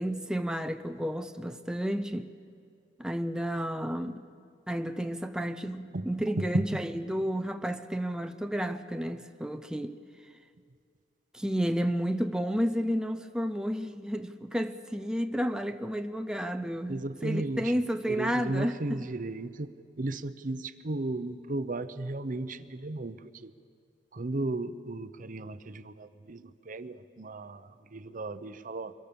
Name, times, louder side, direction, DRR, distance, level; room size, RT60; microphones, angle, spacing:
voice 1, 0.0-2.3 3.0-4.2 4.7-10.0 11.3-19.1, equal, 5° right, 0.6 m, -31 dB
voice 2, 6.4-6.8 16.9-17.8 18.1-19.7 20.0-23.5 24.1-28.9, right 2 dB, 45° right, 0.8 m, -35 dB
25.0 x 22.5 x 6.9 m
head